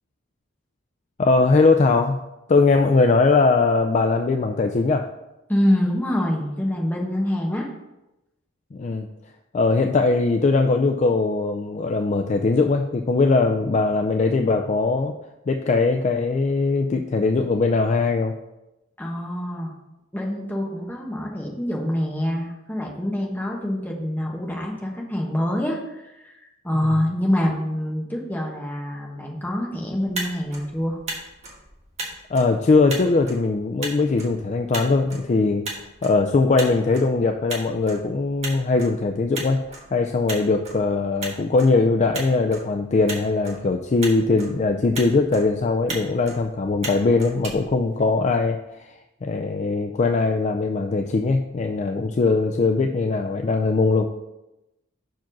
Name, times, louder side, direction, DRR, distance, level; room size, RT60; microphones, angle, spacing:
voice 1, 1.2-5.1 8.7-9.1 9.5-15.2 15.5-18.3 32.3-35.7 36.0-54.0, left 3 dB, 35° left, 4 dB, 0.3 m, -21 dB
voice 2, 5.5-7.7 19.0-19.7 20.1-31.0, left 1 dB, 10° left, -1 dB, 1.1 m, -25 dB
Motor vehicle (road), 29.9-48.5, right 2 dB, 35° right, 1.4 m, -38 dB
5.9 x 4.6 x 6.1 m, 0.95 s
head